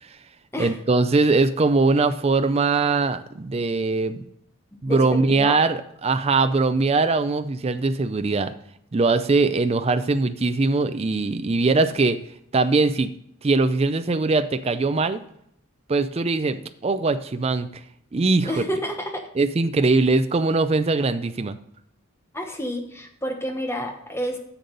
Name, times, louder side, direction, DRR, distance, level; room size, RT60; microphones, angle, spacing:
voice 1, 0.6-4.2 4.8-8.5 8.9-12.2 12.5-13.1 13.4-15.2 15.9-17.7 18.1-18.5 19.4-21.6, right 3 dB, 30° right, 10 dB, 0.4 m, -21 dB
voice 2, 4.9-5.6 18.4-19.2 22.3-24.4, equal, 10° left, 4 dB, 1.1 m, -29 dB
10.0 x 6.8 x 3.9 m, 0.71 s
head